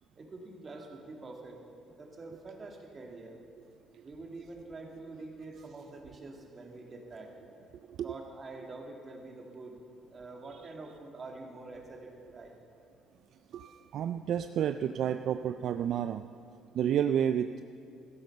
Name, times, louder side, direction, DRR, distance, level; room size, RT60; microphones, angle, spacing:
voice 1, 0.2-1.6 1.8-3.4 4.0-7.3 8.0-9.8 10.1-12.5, right 3 dB, 35° right, 2 dB, 2.2 m, -46 dB
voice 2, 13.5-16.2 16.7-17.6, right 9 dB, 65° right, 10 dB, 0.3 m, -30 dB
13.5 x 10.5 x 6.7 m, 2.6 s
cardioid pair, 95°, 0 cm